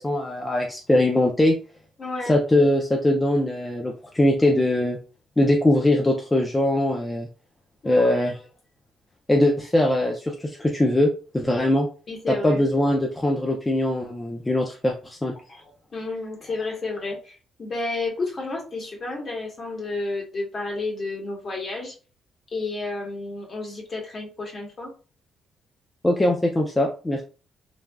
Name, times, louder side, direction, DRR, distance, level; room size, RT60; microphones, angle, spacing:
voice 1, 0.0-1.5 2.3-5.0 5.4-7.3 7.8-8.3 9.3-11.9 12.3-15.3 26.0-27.2, left 1 dB, 15° left, 0 dB, 0.5 m, -21 dB
voice 2, 2.0-2.4 7.8-8.3 12.1-12.6 15.5-21.9 22.5-24.9, left 3 dB, 45° left, 0 dB, 1.2 m, -31 dB
3.2 x 2.4 x 2.2 m, 0.36 s
cardioid pair, 90°, 0 cm